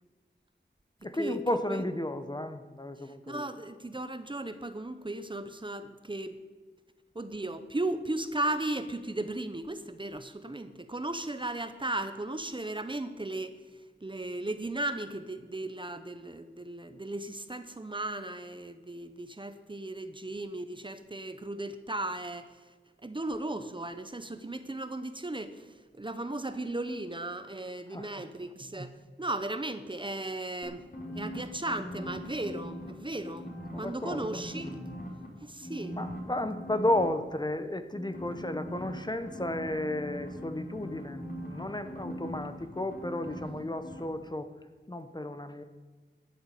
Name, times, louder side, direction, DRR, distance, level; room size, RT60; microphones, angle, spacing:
voice 1, 1.0-3.5 27.9-28.2 33.7-34.4 35.9-44.5 44.9-45.6, left 1 dB, 20° left, 9 dB, 0.9 m, -33 dB
voice 2, 3.0-6.4 7.1-13.6 14.0-22.6 23.0-30.8 31.1-33.5 33.8-35.0 35.4-36.0, right 2 dB, 25° right, 10 dB, 0.9 m, -36 dB
sound 1, 30.6-32.9 33.2-35.3 35.6-37.1 37.9-43.6 43.8-44.0, equal, 45° left, 3.6 m, -41 dB
12.5 x 7.9 x 8.3 m, 1.4 s
wide cardioid pair, 70°, 20 cm